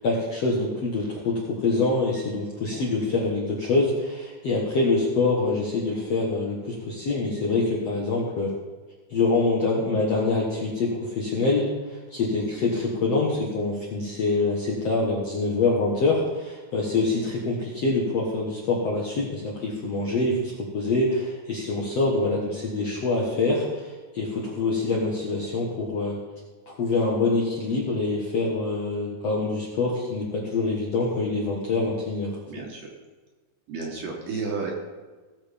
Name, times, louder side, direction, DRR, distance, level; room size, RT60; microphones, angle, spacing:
voice 1, 0.0-8.5 9.1-26.2 26.7-32.4, left 3 dB, 55° left, -4 dB, 1.8 m, -25 dB
voice 2, 12.3-12.7 32.5-32.9 33.7-34.7, right 4 dB, 55° right, -1 dB, 3.0 m, -33 dB
18.0 x 7.2 x 5.2 m, 1.3 s
omnidirectional pair, 5.1 m